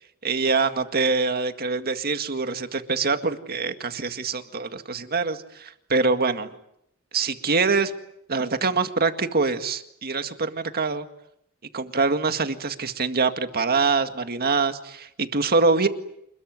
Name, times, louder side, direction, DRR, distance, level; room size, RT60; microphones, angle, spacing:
voice 1, 0.2-6.5 7.1-7.9 8.3-11.1 11.7-15.9, right 4 dB, 45° right, 8 dB, 2.0 m, -24 dB
27.5 x 21.5 x 9.5 m, 0.77 s
head